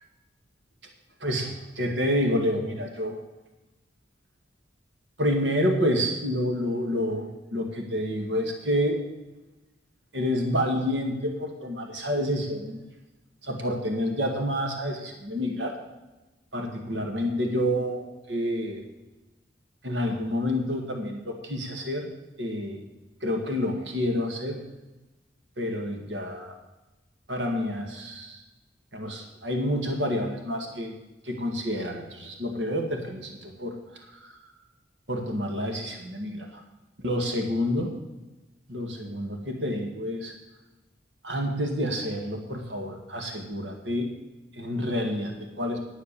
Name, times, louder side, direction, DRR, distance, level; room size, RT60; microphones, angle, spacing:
voice 1, 1.2-3.2 5.2-9.0 10.1-12.8 13.4-15.8 16.5-18.8 19.8-22.1 22.4-22.8 23.2-24.6 25.6-26.6 27.3-28.4 28.9-31.0 31.2-34.5 35.1-36.6 37.0-37.9 38.7-40.3 41.2-44.1 44.5-45.8, equal, 75° right, 3 dB, 1.9 m, -28 dB
10.0 x 9.6 x 6.7 m, 1.1 s
head